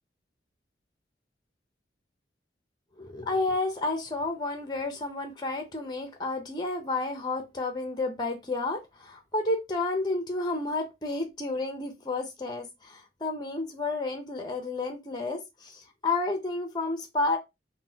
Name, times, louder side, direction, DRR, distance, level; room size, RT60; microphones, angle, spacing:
voice 1, 3.0-17.4, left 2 dB, 25° left, 0.6 m, -31 dB
3.7 x 2.2 x 2.7 m
head